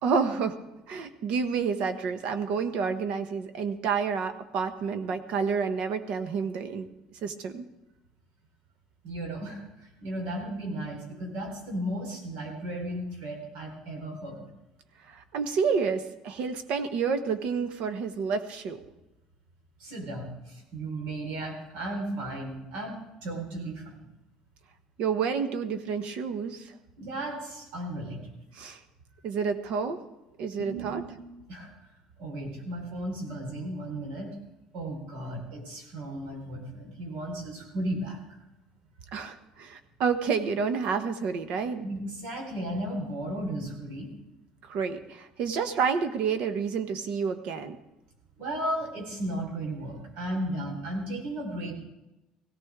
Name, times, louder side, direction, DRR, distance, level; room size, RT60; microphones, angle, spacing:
voice 1, 0.0-0.6 0.9-6.9 7.2-7.6 15.1-18.8 25.0-26.7 28.5-28.8 29.2-30.0 30.4-31.0 39.1-41.8 44.6-47.8, right 5 dB, 60° right, 9 dB, 1.3 m, -29 dB
voice 2, 9.0-14.4 19.8-24.0 27.0-28.2 30.7-31.1 31.5-31.7 32.2-34.3 34.7-38.2 41.8-44.1 48.4-51.7, right 1 dB, 90° right, 1 dB, 4.5 m, -35 dB
17.0 x 17.0 x 3.7 m, 0.98 s
cardioid pair, 155°, 2 cm